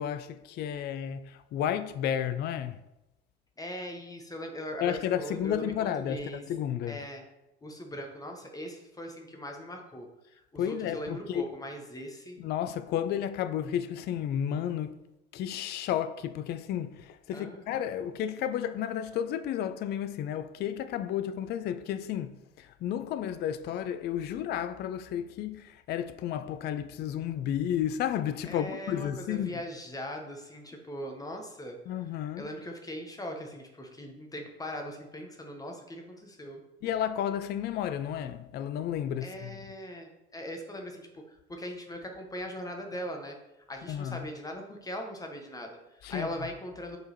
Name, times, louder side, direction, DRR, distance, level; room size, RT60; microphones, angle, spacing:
voice 1, 0.0-2.8 4.8-7.0 10.6-11.5 12.4-15.0 15.3-29.6 31.9-32.5 36.8-39.6 43.9-44.3 46.0-46.5, left 10 dB, 30° left, 0.5 m, -32 dB
voice 2, 3.6-6.4 6.9-7.2 7.6-10.1 10.5-12.4 17.3-17.8 28.4-31.8 32.4-36.6 39.2-43.4 43.7-47.0, equal, 10° left, 1.4 m, -40 dB
8.0 x 4.6 x 4.4 m
figure-of-eight pair, 65°, 33 cm